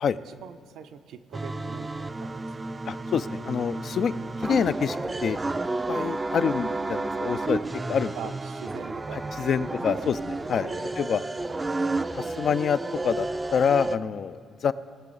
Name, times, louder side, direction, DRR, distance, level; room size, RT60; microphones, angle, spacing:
voice 1, 0.3-2.5 8.2-9.4 9.9-10.2 10.6-11.1 11.5-11.6, right 8 dB, 80° right, 9 dB, 0.5 m, -42 dB
sound 1, 1.3-14.0, right 2 dB, 20° right, 0.4 m, -31 dB
voice 2, 2.9-4.1 4.4-5.0 5.2-5.4 5.9-7.6 7.9-8.2 9.4-10.1 10.5-10.7 11.0-11.3 12.2-12.8 13.0-14.7, left 7 dB, 60° left, 14 dB, 0.4 m, -26 dB
18.5 x 6.8 x 4.0 m, 2.3 s
cardioid pair, 90°, 0 cm